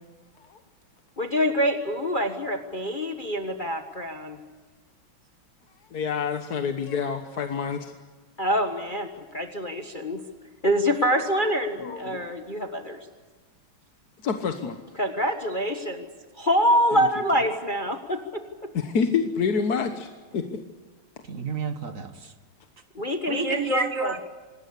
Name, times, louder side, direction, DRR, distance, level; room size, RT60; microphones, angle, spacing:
voice 1, 1.2-4.4 8.4-10.2 10.6-13.0 15.0-16.1 16.3-18.7 22.9-24.1, equal, 25° left, 5 dB, 1.4 m, -26 dB
voice 2, 5.9-7.9 11.8-12.2 14.2-14.8 16.9-17.0 18.7-20.5, left 6 dB, 50° left, 7 dB, 1.6 m, -27 dB
voice 3, 21.2-22.3 23.3-24.2, right 5 dB, 40° right, 9 dB, 1.8 m, -30 dB
26.5 x 20.0 x 8.3 m, 1.3 s
omnidirectional pair, 2.3 m